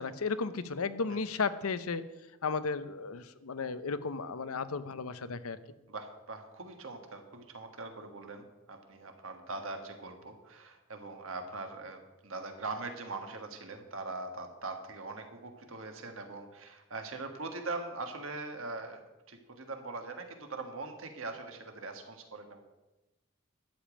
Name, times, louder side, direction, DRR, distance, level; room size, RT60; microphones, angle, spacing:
voice 1, 0.0-2.1 2.4-5.6, left 4 dB, 85° left, 14 dB, 0.7 m, -34 dB
voice 2, 5.9-19.0 19.3-22.6, right 3 dB, 70° right, 5 dB, 1.6 m, -42 dB
12.5 x 5.2 x 8.7 m, 1.0 s
head